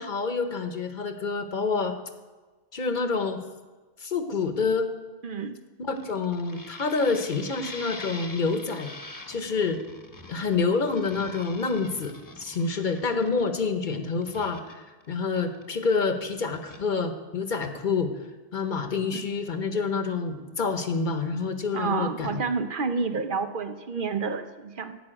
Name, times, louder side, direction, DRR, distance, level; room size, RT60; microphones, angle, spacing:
voice 1, 0.0-2.0 2.7-3.4 4.0-4.9 5.8-8.9 9.3-9.8 10.3-18.1 18.5-22.4, left 4 dB, 50° left, 7 dB, 1.0 m, -27 dB
voice 2, 5.2-5.6 19.1-19.2 21.7-25.0, right 4 dB, 60° right, 8 dB, 0.8 m, -29 dB
sound 1, 6.0-16.0 16.3-16.8, left 2 dB, 20° left, 1.0 m, -44 dB
11.5 x 5.6 x 8.7 m, 1.3 s
omnidirectional pair, 1.1 m